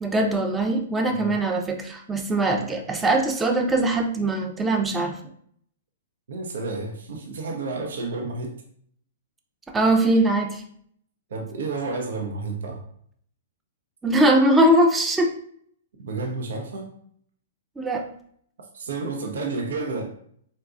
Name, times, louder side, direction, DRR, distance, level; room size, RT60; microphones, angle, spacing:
voice 1, 0.0-5.2 9.7-10.6 14.0-15.3 17.8-18.1, right 1 dB, 10° right, 3 dB, 0.4 m, -21 dB
voice 2, 6.3-8.6 11.3-12.8 16.0-16.9 18.7-20.1, right 3 dB, 70° right, 1 dB, 0.5 m, -31 dB
3.8 x 2.2 x 2.4 m, 0.64 s
hypercardioid pair, 115°, 0 cm